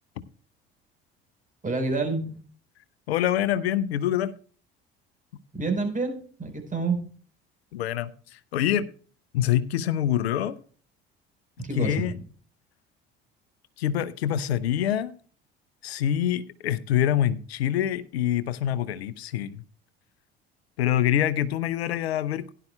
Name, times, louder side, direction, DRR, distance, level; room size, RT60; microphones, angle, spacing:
voice 1, 1.6-2.3 5.5-7.0 11.6-12.2, right 3 dB, 25° right, 4.3 m, -28 dB
voice 2, 3.1-4.3 7.7-8.9 9.3-10.6 11.7-12.1 13.8-15.1 15.8-19.6 20.8-22.5, left 11 dB, 80° left, 0.6 m, -25 dB
16.5 x 11.0 x 2.2 m
figure-of-eight pair, 60°, 31 cm